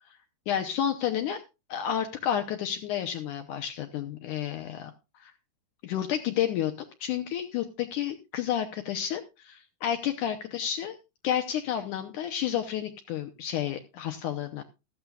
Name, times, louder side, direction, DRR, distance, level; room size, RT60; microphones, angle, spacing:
voice 1, 0.5-1.4 1.7-4.9 5.2-5.3 5.8-6.7 7.0-10.9 11.2-14.6, left 10 dB, 80° left, 7 dB, 1.8 m, -30 dB
15.0 x 12.5 x 2.4 m, 0.27 s
omnidirectional pair, 4.6 m